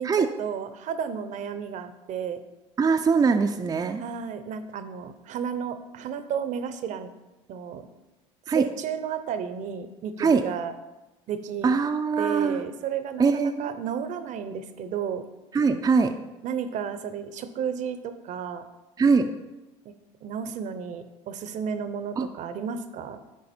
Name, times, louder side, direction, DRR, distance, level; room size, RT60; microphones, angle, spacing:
voice 1, 0.0-2.4 4.0-7.1 7.5-7.9 8.5-10.7 11.3-11.7 12.2-15.2 16.4-18.6 19.8-19.9 20.2-23.2, right 7 dB, 50° right, 10 dB, 0.8 m, -32 dB
voice 2, 2.8-4.0 8.5-8.6 10.2-10.4 11.6-12.6 13.2-13.7 15.5-16.1 19.0-19.3 22.2-22.3, right 5 dB, 20° right, 5 dB, 0.5 m, -22 dB
9.5 x 4.7 x 4.4 m, 1.0 s
hypercardioid pair, 75°, 16 cm